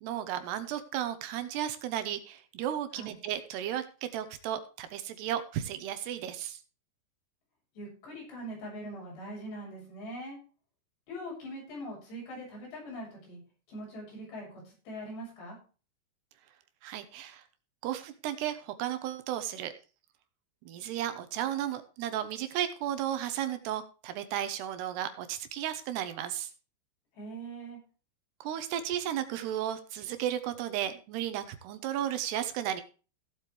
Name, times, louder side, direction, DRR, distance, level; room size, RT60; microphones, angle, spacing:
voice 1, 0.0-6.6 16.8-17.4 17.8-19.7 20.7-26.5 28.4-32.8, right 11 dB, 75° right, 10 dB, 3.0 m, -34 dB
voice 2, 7.8-10.4 11.1-13.4 13.7-15.6 27.1-27.8, right 1 dB, 70° left, -2 dB, 9.3 m, -42 dB
16.5 x 8.0 x 3.3 m, 0.35 s
omnidirectional pair, 5.0 m